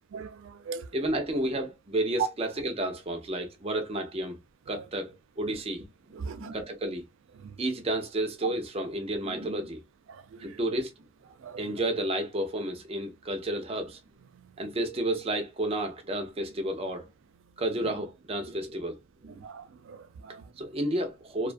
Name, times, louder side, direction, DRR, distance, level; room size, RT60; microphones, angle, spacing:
voice 1, 0.1-0.9 2.2-2.3 4.7-4.8 6.1-6.5 7.4-7.5 10.1-10.6 11.4-11.6 19.4-20.4, right 7 dB, 80° right, 0.3 m, -37 dB
voice 2, 0.9-4.4 4.7-7.0 7.6-9.8 10.4-10.9 11.6-14.0 14.6-17.1 17.6-19.4 20.6-21.5, right 1 dB, 30° right, 0.5 m, -31 dB
2.4 x 2.3 x 2.4 m
head